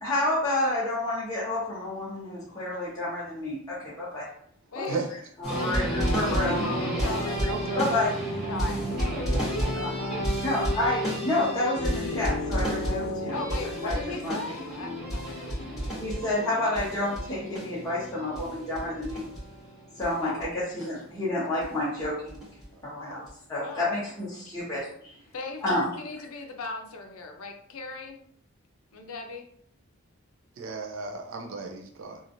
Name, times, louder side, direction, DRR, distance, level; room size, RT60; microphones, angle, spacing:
voice 1, 0.0-4.3 4.7-5.0 5.4-6.7 7.8-8.1 10.4-13.4 13.8-14.0 14.2-14.4 16.0-19.3 20.0-22.5 22.8-23.2 23.5-25.1 25.6-25.9, left 1 dB, 15° left, -10 dB, 0.8 m, -29 dB
voice 2, 4.7-5.2 5.5-5.7 6.3-8.0 8.4-10.0 13.3-15.9 20.2-20.6 23.6-23.8 24.5-24.6 25.3-28.2 28.9-29.5, left 3 dB, 75° left, 4 dB, 0.5 m, -38 dB
sound 1, 5.4-20.1 20.4-20.5 20.8-20.9 21.6-21.7 22.0-22.6 23.3-23.4, equal, ahead, 1.1 m, -31 dB
voice 3, 7.5-7.9 10.0-10.1 22.7-23.2 25.7-25.8 30.6-32.2, right 4 dB, 60° right, 3 dB, 0.4 m, -35 dB
3.0 x 2.4 x 2.5 m, 0.63 s
head